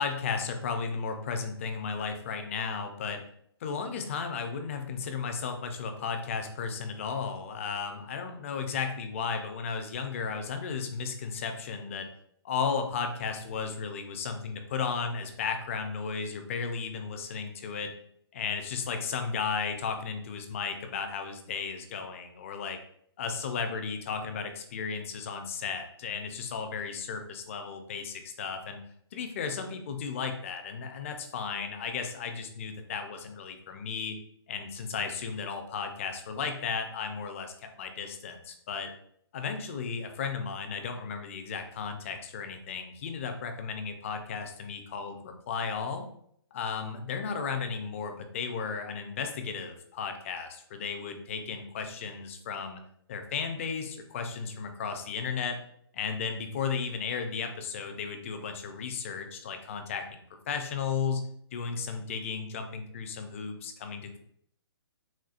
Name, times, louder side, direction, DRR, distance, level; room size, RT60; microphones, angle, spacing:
voice 1, 0.0-3.2 3.6-12.1 12.4-17.9 18.3-22.8 23.2-28.8 29.1-34.1 34.5-38.9 39.3-46.1 46.5-52.8 53.1-55.6 55.9-61.2 61.5-64.1, left 5 dB, 30° left, 6 dB, 0.4 m, -34 dB
4.2 x 2.3 x 2.4 m, 0.68 s
hypercardioid pair, 160°, 14 cm